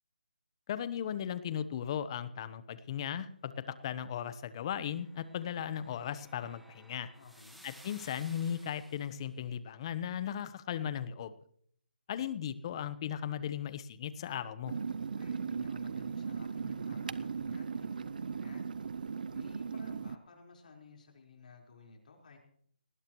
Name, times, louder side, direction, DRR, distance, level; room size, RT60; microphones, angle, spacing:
voice 1, 0.7-7.1 7.6-11.3 12.1-14.7, left 9 dB, 35° left, 14 dB, 1.0 m, -37 dB
sound 1, 4.7-9.3, equal, ahead, 1.5 m, -58 dB
voice 2, 7.2-7.6 15.1-18.7 19.3-22.4, left 4 dB, 60° left, 1 dB, 4.6 m, -55 dB
sound 2, 14.7-20.2, right 5 dB, 60° right, 0.6 m, -38 dB
19.5 x 17.5 x 3.1 m, 0.63 s
hypercardioid pair, 160°, 5 cm